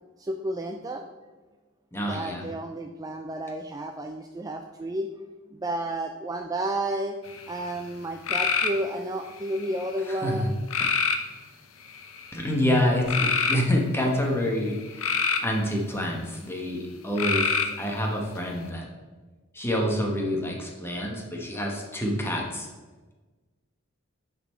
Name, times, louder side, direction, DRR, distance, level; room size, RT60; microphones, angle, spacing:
voice 1, 0.2-1.1 2.1-5.1 5.5-7.2 7.5-10.5, right 1 dB, 20° right, 4 dB, 0.3 m, -31 dB
voice 2, 1.9-2.4 10.1-10.5 10.8-11.0 12.3-15.1 15.4-18.9 19.5-22.7, equal, 10° left, 0 dB, 1.1 m, -27 dB
sound 1, 7.3-7.7 8.3-8.8 9.5-10.0 10.7-11.3 12.0-12.3 13.1-13.6 14.7-15.5 17.2-17.9, left 5 dB, 85° left, 0.7 m, -25 dB
9.4 x 4.0 x 4.4 m, 1.3 s
head